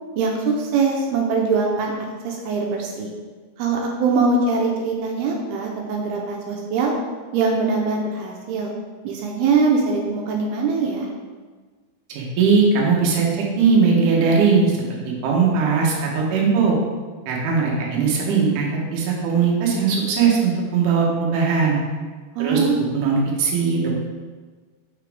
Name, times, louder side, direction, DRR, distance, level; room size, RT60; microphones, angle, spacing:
voice 1, 0.2-1.9 2.2-3.1 3.6-6.9 7.3-8.7 9.0-11.1 22.4-22.8, right 4 dB, 85° right, 0 dB, 2.6 m, -22 dB
voice 2, 12.1-14.7 15.2-16.8 17.3-18.7 18.9-21.8 22.4-24.0, right 5 dB, 65° right, -3 dB, 2.3 m, -19 dB
6.0 x 5.7 x 3.5 m, 1.4 s
omnidirectional pair, 4.6 m